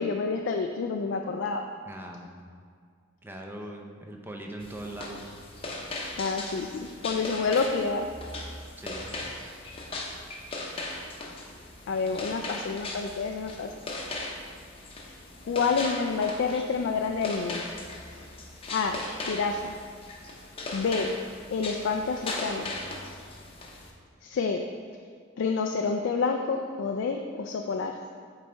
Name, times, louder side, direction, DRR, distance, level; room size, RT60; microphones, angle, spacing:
voice 1, 0.0-1.7 6.2-8.1 11.9-13.7 15.1-15.2 15.5-17.7 18.1-18.3 18.7-19.7 20.7-21.1 21.5-22.7 24.2-24.6 25.4-28.0, left 4 dB, 65° left, 3 dB, 0.3 m, -28 dB
voice 2, 1.9-2.3 3.2-5.2 8.8-9.2, right 1 dB, 10° right, 1 dB, 0.6 m, -40 dB
sound 1, 4.6-23.9, left 2 dB, 30° left, 0.7 m, -38 dB
8.8 x 4.1 x 3.3 m, 2.1 s
head